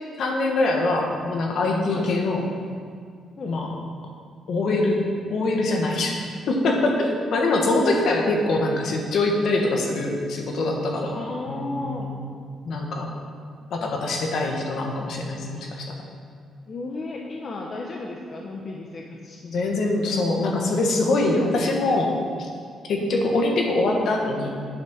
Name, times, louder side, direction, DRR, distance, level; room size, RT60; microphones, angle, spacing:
voice 1, 0.2-2.4 3.5-3.7 4.5-5.0 5.3-6.1 6.5-11.2 11.5-12.2 12.6-13.1 13.7-15.9 19.4-22.1 22.4-22.5 22.9-24.5, left 2 dB, 70° left, 1 dB, 1.3 m, -23 dB
voice 2, 11.1-12.1 16.7-19.5 23.0-23.2, left 2 dB, 50° left, -1 dB, 0.9 m, -34 dB
9.4 x 4.3 x 6.3 m, 2.1 s
cardioid pair, 80°, 0 cm